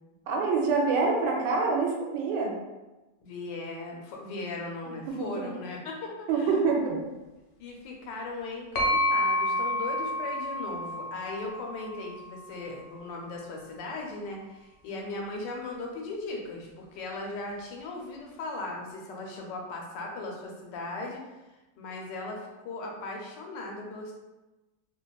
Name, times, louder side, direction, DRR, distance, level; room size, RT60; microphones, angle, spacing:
voice 1, 0.3-2.5 5.1-5.5 6.3-7.0, right 4 dB, 80° right, -1 dB, 1.2 m, -26 dB
voice 2, 3.2-6.5 7.6-21.2 21.8-24.1, left 2 dB, 90° left, 0 dB, 1.3 m, -38 dB
sound 1, 8.8-12.5, equal, 70° left, 0.9 m, -29 dB
3.0 x 2.2 x 2.2 m, 1.1 s
omnidirectional pair, 1.9 m